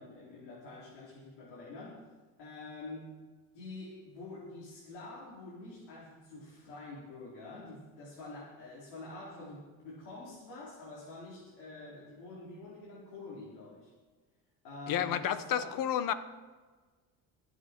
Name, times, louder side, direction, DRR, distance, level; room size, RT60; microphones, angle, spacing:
voice 1, 0.0-2.1 2.4-3.2 3.5-13.9 14.6-15.8, left 2 dB, 85° left, -6 dB, 4.0 m, -47 dB
voice 2, 14.9-16.1, left 10 dB, 55° left, 13 dB, 1.0 m, -31 dB
23.5 x 8.3 x 4.5 m, 1.4 s
cardioid pair, 125°, 39 cm